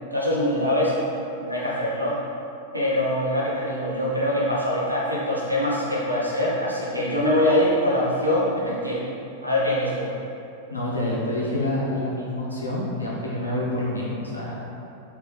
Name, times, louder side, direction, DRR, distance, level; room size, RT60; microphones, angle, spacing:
voice 1, 0.1-0.9 1.4-2.2 2.7-9.0 9.4-10.1, left 1 dB, 90° right, -5 dB, 0.7 m, -23 dB
voice 2, 10.7-14.5, left 1 dB, 85° left, -5 dB, 0.7 m, -27 dB
3.6 x 2.8 x 3.2 m, 2.7 s
figure-of-eight pair, 90°, 0 cm